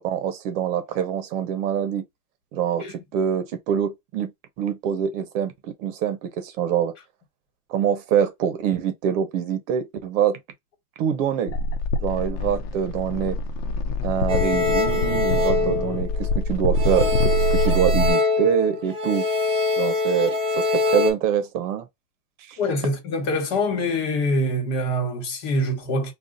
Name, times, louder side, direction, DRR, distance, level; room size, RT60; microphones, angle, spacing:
voice 1, 0.0-2.0 2.5-2.9 3.1-4.3 4.6-6.9 7.7-10.4 11.0-11.5 12.0-13.4 14.0-19.3 19.8-21.9 22.5-22.6, right 9 dB, 50° right, 0.8 m, -25 dB
sound 1, 11.5-18.1, left 1 dB, 75° left, 0.8 m, -24 dB
sound 2, 14.3-16.4 16.8-21.1, left 3 dB, 10° right, 0.5 m, -24 dB
voice 2, 22.6-26.1, left 1 dB, 50° left, 1.5 m, -24 dB
2.4 x 2.4 x 3.9 m
supercardioid pair, 140°, 48 cm